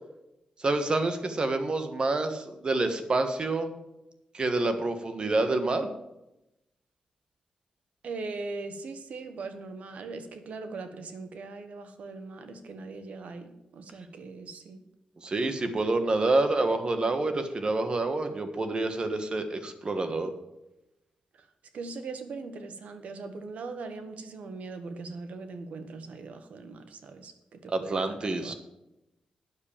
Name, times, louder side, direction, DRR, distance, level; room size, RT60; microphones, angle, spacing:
voice 1, 0.6-3.7 4.3-5.9 15.2-20.3 27.7-28.5, right 2 dB, 40° right, 8 dB, 1.4 m, -27 dB
voice 2, 8.0-14.8 21.7-28.5, right 3 dB, 80° right, 9 dB, 1.2 m, -40 dB
9.6 x 7.0 x 7.3 m, 0.91 s
cardioid pair, 95°, 2 cm